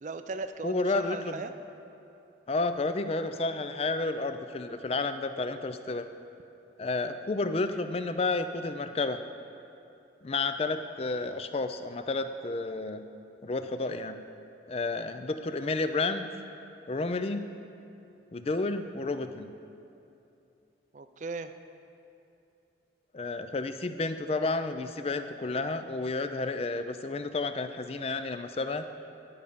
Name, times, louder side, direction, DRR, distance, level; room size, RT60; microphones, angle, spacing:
voice 1, 0.0-1.5 20.9-21.5, right 3 dB, 40° right, 10 dB, 0.4 m, -37 dB
voice 2, 0.6-1.4 2.5-6.1 6.8-9.2 10.2-13.0 13.4-14.2 14.7-16.3 16.9-17.4 18.3-19.5 23.1-28.8, left 3 dB, 30° left, 9 dB, 0.4 m, -31 dB
10.5 x 5.0 x 6.8 m, 2.8 s
head